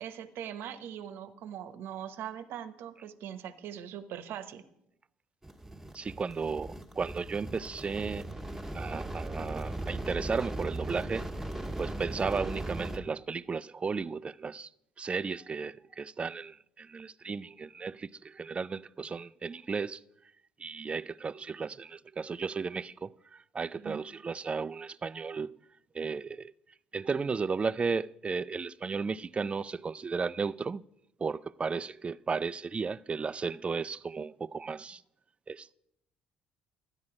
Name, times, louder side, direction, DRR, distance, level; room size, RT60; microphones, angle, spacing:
voice 1, 0.0-4.7 23.8-24.0, right 9 dB, 65° right, 1.0 m, -41 dB
sound 1, 5.4-13.0, right 1 dB, 5° right, 1.5 m, -38 dB
voice 2, 5.9-8.3 8.7-11.3 11.8-14.7 15.0-20.0 20.6-25.6 25.9-26.5 26.9-30.8 31.2-35.0 35.5-35.7, right 5 dB, 30° right, 0.4 m, -34 dB
12.5 x 9.8 x 4.8 m
hypercardioid pair, 65°, 4 cm